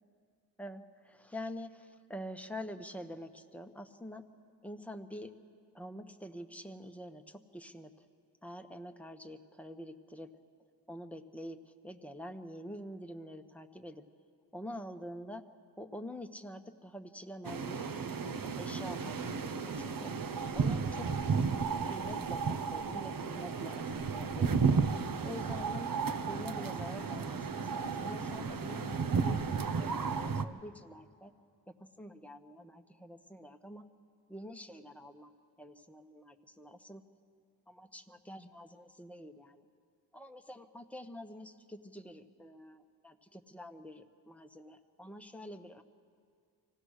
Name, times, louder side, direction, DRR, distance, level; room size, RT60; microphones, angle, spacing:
voice 1, 0.6-4.2 4.6-5.3 5.7-8.0 8.4-10.3 10.9-14.0 14.5-15.4 15.8-17.8 18.4-20.2 20.5-21.0 21.9-24.8 25.2-25.9 26.2-31.3 31.7-33.8 34.3-37.0 37.7-39.6 40.1-45.8, equal, 5° left, 6 dB, 1.0 m, -46 dB
sound 1, 17.4-30.4, right 5 dB, 55° right, 0.9 m, -33 dB
25.0 x 16.5 x 6.5 m, 2.2 s
cardioid pair, 60°, 42 cm